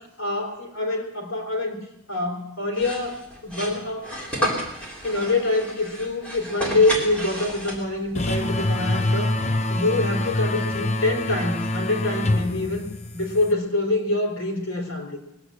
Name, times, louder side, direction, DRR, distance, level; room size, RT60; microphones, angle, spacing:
voice 1, 0.2-4.6 5.0-9.3 9.7-12.9 13.1-15.2, left 2 dB, 70° left, 1 dB, 3.7 m, -25 dB
sound 1, 2.7-8.1, equal, 5° left, 3.2 m, -31 dB
sound 2, 8.1-13.5, left 1 dB, 30° left, 0.9 m, -25 dB
20.0 x 8.6 x 7.9 m, 0.85 s
head